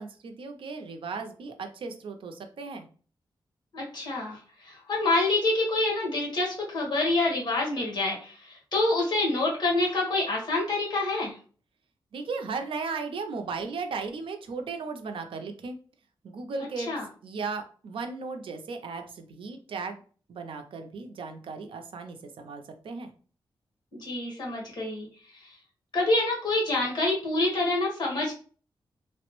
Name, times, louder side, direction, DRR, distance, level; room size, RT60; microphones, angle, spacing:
voice 1, 0.0-2.9 12.1-15.8 16.2-16.9 17.2-20.0 20.3-23.1, right 4 dB, 80° right, 6 dB, 0.5 m, -36 dB
voice 2, 3.7-11.4 16.8-17.0 24.0-25.1 25.4-25.5 25.9-28.3, left 2 dB, 55° left, -2 dB, 1.3 m, -27 dB
3.2 x 2.0 x 3.0 m, 0.40 s
wide cardioid pair, 140°, 9 cm